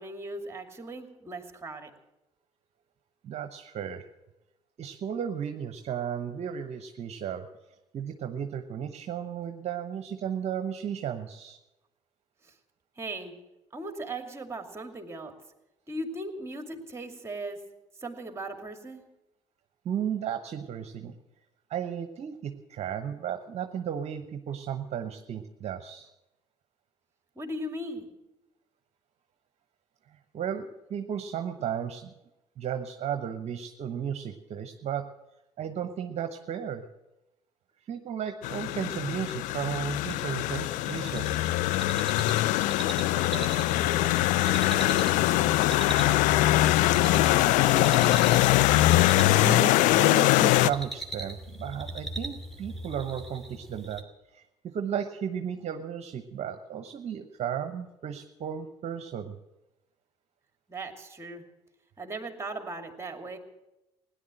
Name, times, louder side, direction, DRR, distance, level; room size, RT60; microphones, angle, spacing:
voice 1, 0.0-1.9 12.4-12.5 13.0-13.3 13.7-15.3 15.9-17.6 18.0-19.0 27.4-28.1 43.1-48.4 60.7-61.4 62.0-63.4, right 2 dB, 20° right, 6 dB, 2.5 m, -39 dB
voice 2, 3.2-4.1 4.8-7.5 7.9-11.6 19.8-21.2 21.7-26.1 30.3-32.1 32.6-35.1 35.6-36.8 37.9-41.4 49.4-54.0 54.3-59.4, right 8 dB, 50° right, 7 dB, 0.9 m, -34 dB
sound 1, 38.4-50.7, left 16 dB, 70° left, 0.4 m, -23 dB
sound 2, 40.1-54.0, right 2 dB, ahead, 2.7 m, -41 dB
17.0 x 10.5 x 7.7 m, 0.96 s
hypercardioid pair, 55°, 14 cm